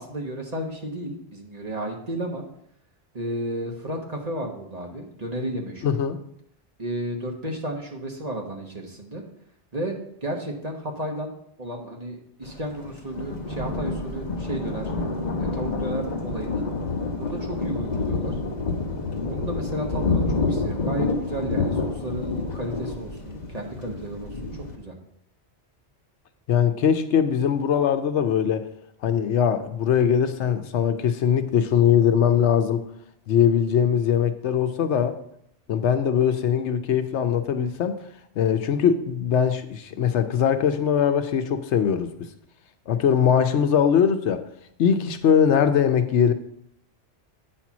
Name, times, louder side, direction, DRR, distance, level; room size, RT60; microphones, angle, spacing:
voice 1, 0.0-2.4 3.1-5.8 6.8-9.2 9.7-11.3 11.6-14.9 15.4-16.6 17.2-18.4 19.3-24.3 24.8-24.9, right 1 dB, 35° right, 1 dB, 1.3 m, -33 dB
voice 2, 5.8-6.2 26.5-28.7 29.0-32.8 33.3-35.2 35.7-38.0 38.4-42.1 42.9-44.5 44.8-46.3, left 8 dB, 80° left, 9 dB, 1.0 m, -21 dB
Thunder, 12.4-24.8, left 3 dB, 40° left, 1.0 m, -28 dB
8.8 x 4.4 x 6.0 m, 0.72 s
omnidirectional pair, 1.2 m